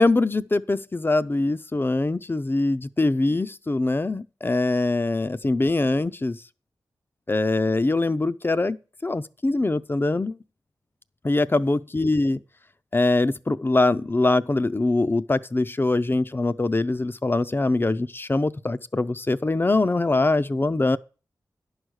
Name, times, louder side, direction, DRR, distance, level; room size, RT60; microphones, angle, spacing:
voice 1, 0.0-6.4 7.3-8.8 9.0-10.4 11.2-12.4 12.9-21.0, left 2 dB, 30° left, 0.5 m, -23 dB
10.5 x 4.8 x 6.3 m
cardioid pair, 45°, 8 cm